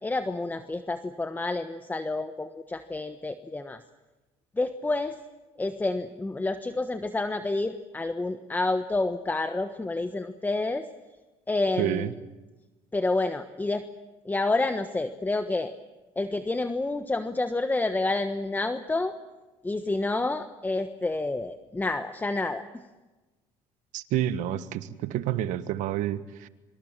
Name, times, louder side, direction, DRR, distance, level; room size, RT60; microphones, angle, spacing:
voice 1, 0.0-3.8 4.6-5.2 5.6-10.9 11.5-12.1 12.9-13.8 14.2-15.7 16.2-19.1 19.6-22.8, left 2 dB, 15° left, 10 dB, 1.3 m, -29 dB
voice 2, 11.8-12.1 23.9-26.5, right 12 dB, 75° right, 13 dB, 1.5 m, -29 dB
25.5 x 25.0 x 7.5 m, 1.2 s
supercardioid pair, 90°, 13 cm